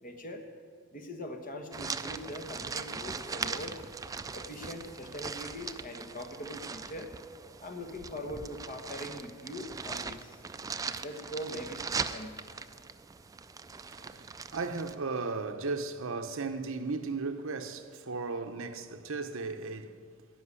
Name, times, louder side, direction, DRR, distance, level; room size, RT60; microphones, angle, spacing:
voice 1, 0.0-0.4 0.9-3.8 4.3-7.1 7.6-10.4 11.0-12.4, left 1 dB, 40° left, 1.3 m, -41 dB
sound 1, 1.7-14.9, right 5 dB, 15° right, 0.3 m, -40 dB
voice 2, 13.9-20.0, right 4 dB, 65° right, 0.8 m, -36 dB
15.5 x 6.0 x 9.7 m
head